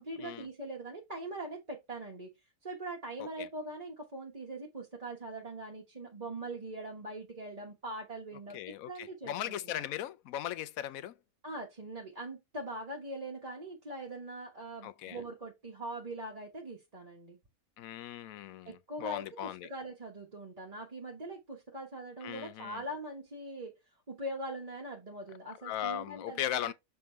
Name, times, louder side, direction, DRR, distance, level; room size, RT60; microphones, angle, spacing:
voice 1, 0.0-2.3 2.6-8.6 8.9-9.8 11.4-17.4 18.6-23.7 24.1-26.7, right 1 dB, 30° right, 1.3 m, -42 dB
voice 2, 8.5-11.1 14.8-15.2 17.8-19.7 22.2-22.8 25.6-26.7, left 11 dB, 85° left, 1.0 m, -38 dB
6.9 x 3.5 x 4.5 m
omnidirectional pair, 1.4 m